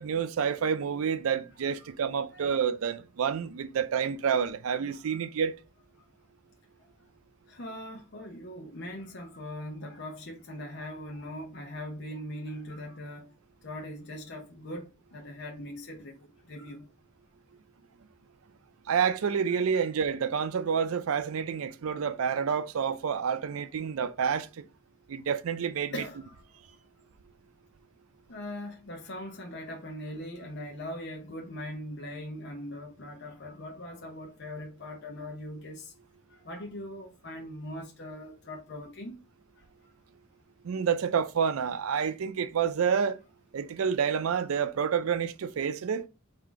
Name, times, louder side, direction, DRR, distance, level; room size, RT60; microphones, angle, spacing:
voice 1, 0.0-5.6 18.9-24.6 25.1-25.9 40.6-43.2 43.5-46.1, right 7 dB, 90° right, 0.4 m, -28 dB
voice 2, 2.3-2.6 5.1-5.2 6.0-6.1 7.5-13.3 13.6-16.8 25.9-26.4 28.3-35.9 36.3-39.2 39.6-39.7, left 1 dB, 55° left, 0.8 m, -41 dB
3.9 x 2.7 x 4.6 m
head